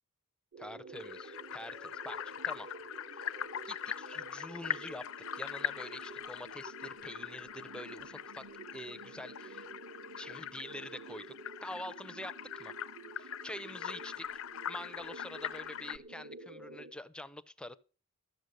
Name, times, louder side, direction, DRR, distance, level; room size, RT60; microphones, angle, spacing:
sound 1, 0.5-16.9, right 3 dB, 55° right, 1.4 m, -50 dB
voice 1, 0.6-2.7 3.1-3.3 3.7-5.0 5.3-8.4 8.7-9.7 10.2-11.3 11.6-12.7 13.2-14.3 14.7-17.8, left 1 dB, 5° left, 0.5 m, -46 dB
sound 2, 0.9-16.0, left 9 dB, 65° left, 0.5 m, -42 dB
13.5 x 7.9 x 6.6 m
head